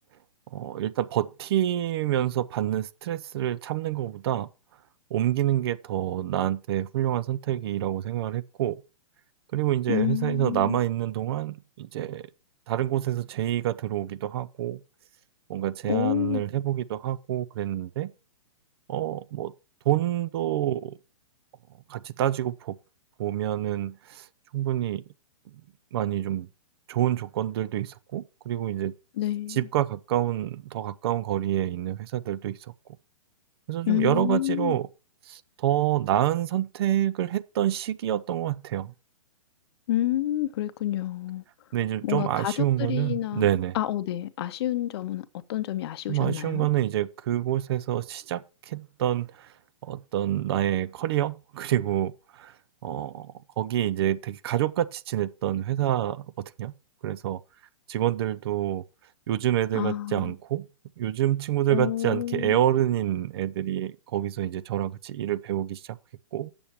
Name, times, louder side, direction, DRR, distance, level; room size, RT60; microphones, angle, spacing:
voice 1, 0.5-4.5 5.1-8.8 9.5-12.3 12.7-14.8 15.5-18.1 18.9-19.5 19.9-21.0 21.9-22.8 23.2-24.3 24.5-25.0 25.9-26.5 26.9-28.9 29.5-32.6 33.7-34.9 35.6-38.9 41.7-43.8 46.1-49.5 49.8-52.5 52.8-56.3 56.6-56.7 57.0-57.4 57.9-58.8 59.3-60.7 61.0-66.0 66.3-66.5, right 12 dB, 45° right, 0.5 m, -27 dB
voice 2, 9.9-10.8 15.9-16.4 29.2-29.7 33.9-34.8 39.9-41.4 42.0-43.5 43.7-46.7 59.7-60.3 61.7-62.6, left 13 dB, 45° left, 0.7 m, -29 dB
8.7 x 7.0 x 4.4 m
hypercardioid pair, 145°, 18 cm